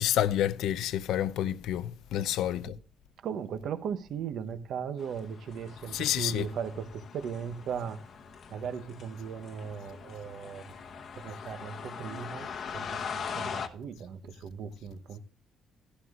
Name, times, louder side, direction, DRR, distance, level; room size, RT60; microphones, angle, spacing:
voice 1, 0.0-2.8 5.9-6.5, left 12 dB, 80° left, 0.6 m, -29 dB
voice 2, 2.2-2.7 3.2-8.0 8.5-10.7 11.1-15.2, right 7 dB, 65° right, 0.9 m, -38 dB
sound 1, 5.0-13.7, left 6 dB, 50° left, 1.0 m, -41 dB
14.5 x 11.5 x 2.5 m
cardioid pair, 125°, 0 cm